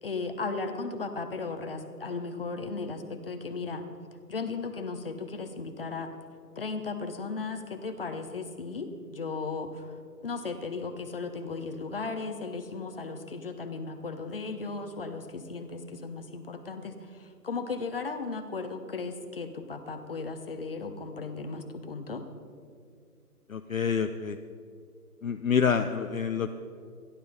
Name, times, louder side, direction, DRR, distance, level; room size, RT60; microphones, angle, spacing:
voice 1, 0.0-3.9 4.3-6.1 6.6-10.0 10.2-22.2, left 4 dB, 35° left, 7 dB, 0.9 m, -36 dB
voice 2, 23.5-24.4 25.2-26.5, left 6 dB, 60° left, 7 dB, 0.6 m, -27 dB
13.5 x 11.5 x 5.1 m, 2.2 s
figure-of-eight pair, 160°, 47 cm